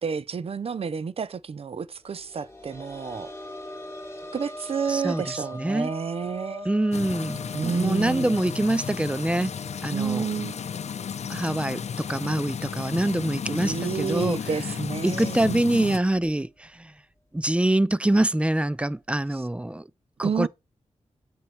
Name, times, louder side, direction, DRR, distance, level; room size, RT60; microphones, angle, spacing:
voice 1, 0.0-3.3 4.3-6.7 7.5-8.3 9.9-10.6 13.5-15.6 20.2-20.5, right 6 dB, 55° right, 0.6 m, -30 dB
sound 1, 2.1-13.6 13.9-14.0 15.5-15.6, equal, 20° left, 4.2 m, -43 dB
voice 2, 4.9-5.2 5.5-5.9 6.7-9.5 9.8-10.2 11.3-11.8 12.1-14.4 15.0-16.9 17.3-19.8 20.2-20.5, right 1 dB, 10° right, 0.4 m, -25 dB
sound 2, 6.9-16.0, left 7 dB, 65° left, 0.6 m, -33 dB
7.8 x 7.0 x 4.4 m
wide cardioid pair, 105°, 12 cm